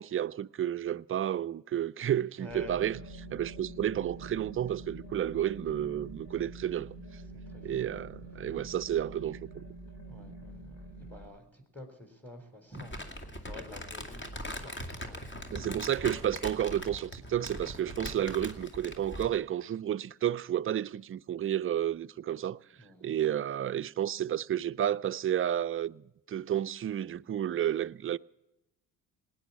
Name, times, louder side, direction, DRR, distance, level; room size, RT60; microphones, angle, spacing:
voice 1, 0.0-3.0 3.3-7.2 7.6-9.7 15.5-22.6 23.0-28.2, right 11 dB, 30° right, 0.5 m, -31 dB
voice 2, 2.4-2.8 6.4-6.5 7.3-7.7 10.0-15.7 16.9-17.7 22.7-23.4, left 1 dB, 5° left, 3.7 m, -50 dB
sound 1, 2.5-11.2, right 2 dB, 65° left, 3.6 m, -46 dB
Crumpling crinkling, 12.7-19.4, left 1 dB, 25° left, 2.3 m, -41 dB
18.5 x 9.4 x 7.0 m
hypercardioid pair, 55°, 42 cm